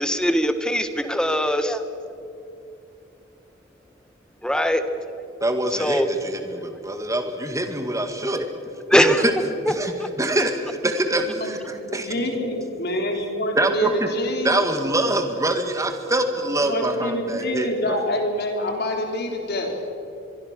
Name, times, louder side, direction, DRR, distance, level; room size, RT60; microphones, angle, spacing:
voice 1, 0.0-1.8 4.4-4.8 5.8-6.1 8.9-9.2 10.0-10.1, equal, 5° left, 1.2 m, -21 dB
voice 2, 5.4-8.5 8.9-9.3 9.7-9.9 10.2-12.1 13.6-14.1 14.4-18.0, right 1 dB, 15° right, 2.1 m, -24 dB
voice 3, 11.8-14.7 16.7-19.9, left 1 dB, 55° left, 3.9 m, -26 dB
23.5 x 23.5 x 6.7 m
head